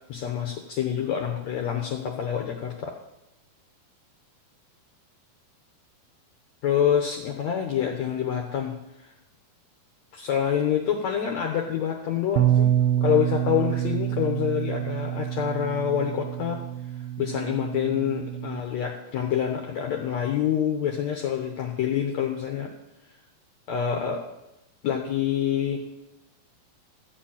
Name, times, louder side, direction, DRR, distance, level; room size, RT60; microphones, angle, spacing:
voice 1, 0.1-3.0 6.6-9.1 10.1-12.7 13.0-16.6 17.2-22.7 23.7-24.2 24.8-25.8, left 9 dB, 75° left, 2 dB, 1.6 m, -27 dB
Bass guitar, 12.4-18.6, right 11 dB, 90° right, 2.6 m, -27 dB
14.0 x 5.2 x 8.7 m, 0.91 s
omnidirectional pair, 4.5 m